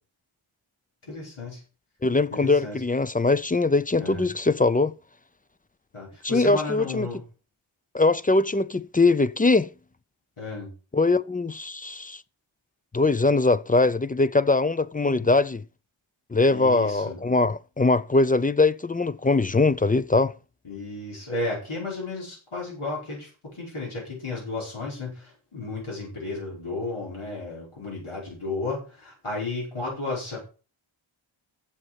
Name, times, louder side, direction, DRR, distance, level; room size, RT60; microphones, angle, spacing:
voice 1, 1.0-1.6 2.3-2.8 4.0-4.3 5.9-7.2 10.4-10.7 15.0-15.3 16.5-17.2 20.6-30.4, left 3 dB, 85° left, 5.1 m, -33 dB
voice 2, 2.0-4.9 6.2-7.1 7.9-9.7 10.9-12.2 12.9-15.6 16.3-20.3, left 3 dB, 20° left, 0.4 m, -22 dB
8.0 x 7.2 x 5.8 m
wide cardioid pair, 70°, 48 cm